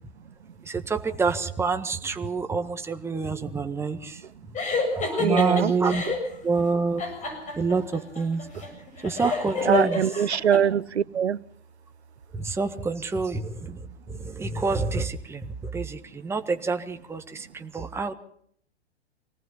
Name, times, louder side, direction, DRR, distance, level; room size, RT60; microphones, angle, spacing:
voice 1, 0.6-4.2 4.9-6.0 6.4-7.0 7.5-8.4 9.0-10.0 12.3-18.1, right 4 dB, 10° right, 7 dB, 1.5 m, -27 dB
sound 1, 4.5-6.3 7.0-10.6, left 4 dB, 20° left, 7.4 m, -29 dB
voice 2, 5.2-5.7 9.7-11.4, right 8 dB, 80° right, 22 dB, 0.9 m, -23 dB
25.5 x 18.5 x 5.7 m, 0.64 s
figure-of-eight pair, 115°, 33 cm